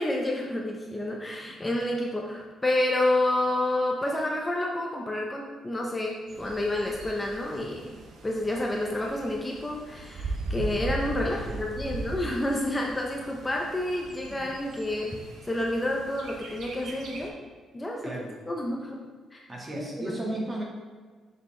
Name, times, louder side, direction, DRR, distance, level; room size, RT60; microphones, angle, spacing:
voice 1, 0.0-7.9 8.2-15.1 15.4-17.3 17.7-19.0 19.3-19.4 19.7-20.2, left 1 dB, 15° left, -1 dB, 0.8 m, -29 dB
Bird, 6.3-17.3, right 2 dB, 70° right, 1.0 m, -39 dB
voice 2, 11.2-11.9 14.2-14.4 18.0-18.3 19.5-20.6, right 1 dB, 30° right, -2 dB, 1.7 m, -35 dB
6.6 x 5.2 x 3.3 m, 1.5 s
cardioid pair, 90°, 0 cm